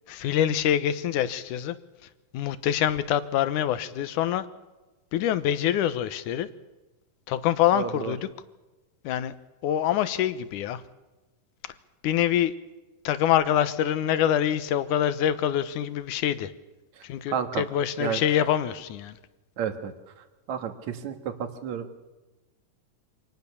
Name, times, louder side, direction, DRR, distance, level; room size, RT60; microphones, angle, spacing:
voice 1, 0.1-1.8 2.3-4.5 5.1-6.5 7.3-8.3 9.0-9.3 9.6-10.8 12.0-12.5 13.0-16.5 17.0-19.1, left 10 dB, 70° left, 2.4 m, -25 dB
voice 2, 7.7-8.2 17.0-17.7 18.0-18.2 19.6-19.9 20.2-22.0, right 8 dB, 60° right, 2.9 m, -32 dB
26.0 x 19.0 x 7.0 m
omnidirectional pair, 3.8 m